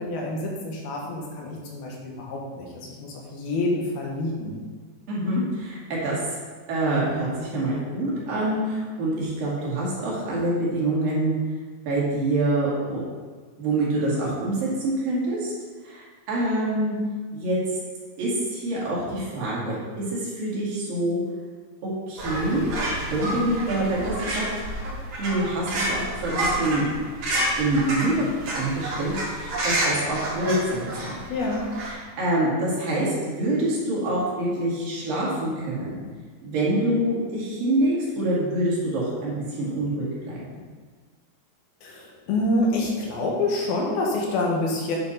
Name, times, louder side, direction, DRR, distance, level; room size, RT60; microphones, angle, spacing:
voice 1, 0.0-4.5 31.3-31.6 41.8-45.0, left 2 dB, 80° left, -2 dB, 3.3 m, -27 dB
voice 2, 5.1-6.2 6.7-11.3 11.9-13.0 13.6-15.5 15.8-16.9 17.3-17.6 18.2-19.8 20.1-21.2 22.1-22.7 23.1-24.5 25.2-26.9 27.6-28.3 28.5-31.2 31.8-36.0 36.4-40.4, right 1 dB, 70° right, -6 dB, 4.1 m, -26 dB
sound 1, 22.2-31.9, right 1 dB, 55° right, 3.4 m, -29 dB
9.3 x 7.0 x 4.2 m, 1.5 s
omnidirectional pair, 4.2 m